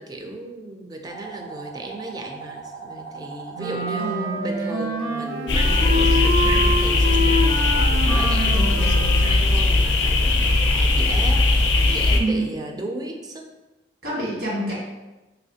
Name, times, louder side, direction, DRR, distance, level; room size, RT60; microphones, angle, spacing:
voice 1, 0.0-13.5, right 2 dB, 20° right, 3 dB, 0.4 m, -35 dB
sound 1, 1.1-6.6, right 2 dB, 30° left, 0.5 m, -39 dB
Wind instrument woodwind instrument, 3.5-9.4, left 1 dB, 60° right, 0.7 m, -26 dB
voice 2, 4.0-4.4 12.1-12.5 14.0-14.7, right 1 dB, 80° right, -6 dB, 1.5 m, -26 dB
sound 2, 5.5-12.2, left 2 dB, 90° left, 0.4 m, -19 dB
3.1 x 3.0 x 2.7 m, 1.1 s
head